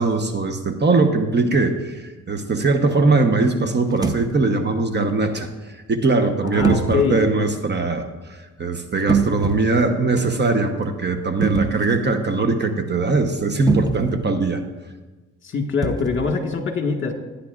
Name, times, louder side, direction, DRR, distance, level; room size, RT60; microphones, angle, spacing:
voice 1, 0.0-5.5 5.9-14.6, right 3 dB, 35° right, 6 dB, 1.1 m, -21 dB
sound 1, 3.9-4.3 6.6-7.1 9.0-9.8 11.4-12.0 13.7-14.1 15.8-16.3, right 5 dB, 15° right, 0.9 m, -23 dB
voice 2, 6.4-7.2 15.4-17.1, left 5 dB, 40° left, 3 dB, 1.8 m, -23 dB
17.5 x 9.9 x 2.5 m, 1.2 s
cardioid pair, 90°, 30 cm